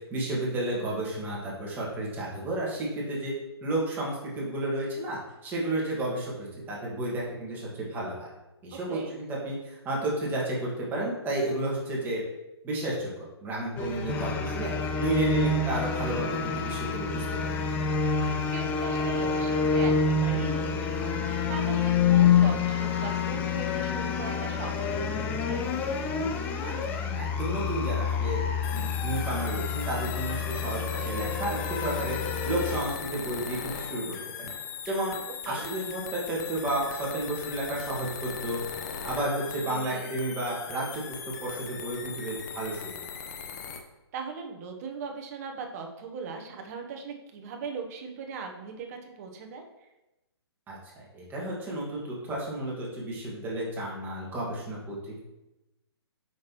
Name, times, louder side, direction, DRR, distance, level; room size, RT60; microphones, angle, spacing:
voice 1, 0.1-3.3 3.6-8.3 8.6-12.2 12.6-17.5 26.6-26.7 27.1-28.4 28.7-34.5 34.9-35.2 35.5-38.6 39.0-43.0 50.7-50.8 51.1-55.2, right 1 dB, 15° right, -5 dB, 1.9 m, -32 dB
voice 2, 8.7-9.1 18.5-26.0 30.7-31.2 35.4-35.7 39.7-40.1 44.1-49.6, right 5 dB, 35° right, 3 dB, 1.0 m, -39 dB
sound 1, 13.8-32.8, left 5 dB, 10° left, 0.4 m, -27 dB
sound 2, 28.6-43.8, left 7 dB, 40° left, 0.7 m, -39 dB
7.2 x 5.9 x 3.1 m, 0.97 s
hypercardioid pair, 140°, 14 cm